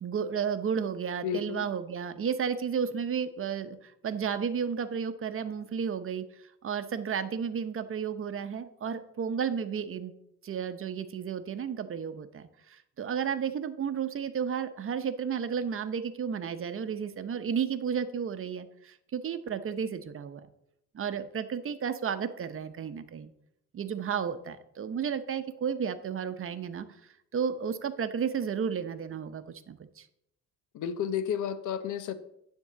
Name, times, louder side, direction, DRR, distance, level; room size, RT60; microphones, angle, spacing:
voice 1, 0.0-6.2 6.6-10.1 10.4-20.4 20.9-23.3 23.7-26.9 27.3-30.1, right 7 dB, 45° right, 10 dB, 0.8 m, -32 dB
voice 2, 1.2-1.7 30.7-32.1, left 8 dB, 80° left, 12 dB, 0.8 m, -32 dB
10.0 x 3.7 x 6.8 m, 0.77 s
cardioid pair, 90°, 30 cm